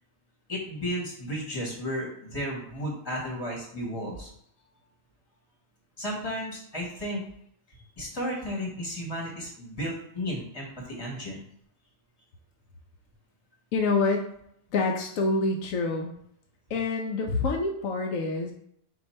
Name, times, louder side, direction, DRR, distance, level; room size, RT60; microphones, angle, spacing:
voice 1, 0.5-4.3 6.0-7.2 7.7-11.4, equal, 20° left, -2 dB, 1.1 m, -33 dB
voice 2, 13.7-14.3 14.7-16.1 16.7-18.5, left 3 dB, 80° left, 2 dB, 1.0 m, -26 dB
4.5 x 2.4 x 4.2 m, 0.71 s
omnidirectional pair, 1.4 m